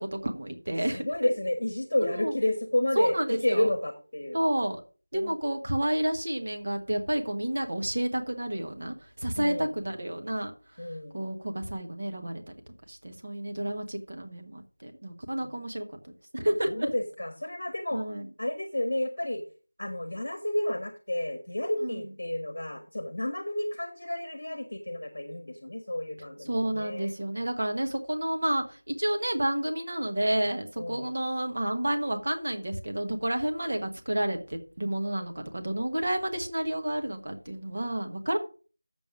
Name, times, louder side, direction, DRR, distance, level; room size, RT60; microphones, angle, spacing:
voice 1, 0.1-1.1 2.0-2.3 3.0-3.7 4.3-4.8 5.1-10.5 11.1-12.5 12.9-15.8 16.3-16.9 17.9-18.3 21.8-22.0 26.4-38.4, right 1 dB, 30° right, 4 dB, 1.1 m, -30 dB
voice 2, 0.9-4.4 5.1-5.3 9.4-9.7 10.8-11.2 16.7-18.0 18.4-19.4 19.8-27.1 30.8-31.1, left 1 dB, 35° left, 7 dB, 1.3 m, -30 dB
7.5 x 7.1 x 6.0 m, 0.37 s
figure-of-eight pair, 180°, 0 cm